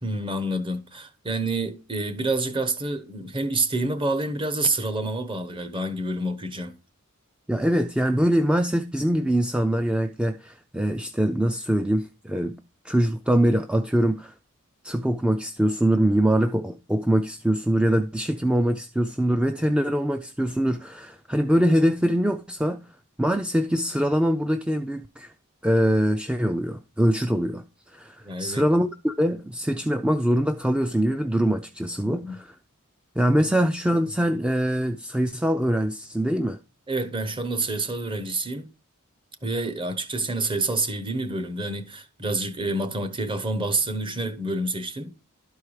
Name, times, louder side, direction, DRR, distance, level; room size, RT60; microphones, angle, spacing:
voice 1, 0.0-6.8 28.2-28.6 32.0-32.4 36.9-38.7 39.4-45.2, right 2 dB, 25° right, 1.0 m, -28 dB
voice 2, 7.5-12.6 12.8-14.3 14.8-22.8 23.2-25.3 25.6-27.6 27.9-32.5 33.2-36.6, equal, 5° right, 0.4 m, -23 dB
12.0 x 4.7 x 4.8 m
head